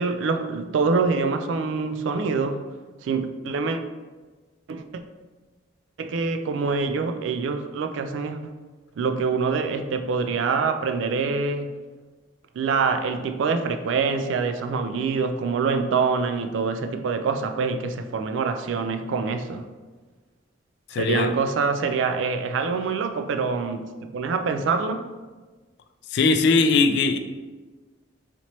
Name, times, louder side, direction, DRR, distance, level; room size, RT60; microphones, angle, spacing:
voice 1, 0.0-2.6 3.0-3.8 4.7-5.0 6.0-8.5 9.0-11.7 12.6-19.6 20.9-25.1, right 4 dB, 75° right, 0.3 m, -25 dB
voice 2, 20.9-21.3 26.1-27.2, left 4 dB, 60° left, 0.3 m, -20 dB
4.2 x 2.9 x 3.0 m
head